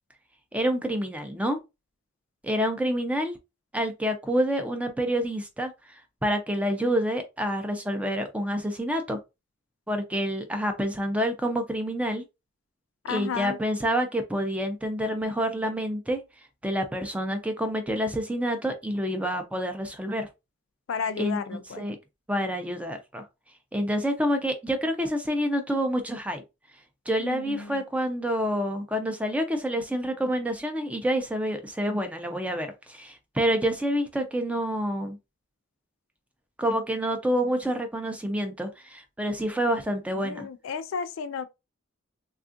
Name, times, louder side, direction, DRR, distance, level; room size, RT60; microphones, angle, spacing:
voice 1, 0.5-1.6 2.4-3.4 3.7-9.2 9.9-12.2 13.1-16.2 16.6-20.3 21.2-21.4 21.8-22.0 22.3-23.2 23.7-26.4 27.1-35.2 36.6-40.5, equal, 5° right, 0.4 m, -28 dB
voice 2, 13.0-13.6 20.9-21.9 27.2-27.8 40.2-41.5, left 6 dB, 70° left, 0.3 m, -32 dB
3.4 x 2.3 x 2.5 m
head